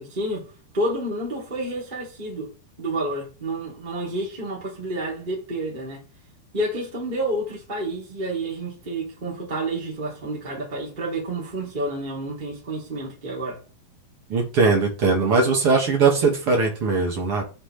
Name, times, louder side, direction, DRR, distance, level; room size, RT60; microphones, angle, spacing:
voice 1, 0.0-2.5 2.8-6.0 6.5-13.6, right 1 dB, 15° right, 2.4 m, -29 dB
voice 2, 14.3-17.4, right 4 dB, 50° right, 1.7 m, -20 dB
13.0 x 5.9 x 3.4 m
omnidirectional pair, 5.5 m